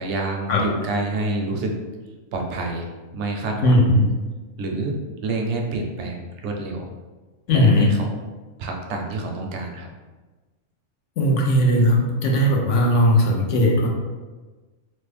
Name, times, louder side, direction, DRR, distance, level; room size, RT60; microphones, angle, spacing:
voice 1, 0.0-1.8 2.3-2.9 3.1-3.9 4.6-4.9 5.2-6.9 7.5-8.1 8.6-9.9, right 2 dB, 70° right, 1 dB, 0.8 m, -27 dB
voice 2, 3.6-4.1 7.5-7.9 11.2-13.9, left 1 dB, 70° left, 0 dB, 0.9 m, -18 dB
3.1 x 2.1 x 3.2 m, 1.3 s
omnidirectional pair, 1.4 m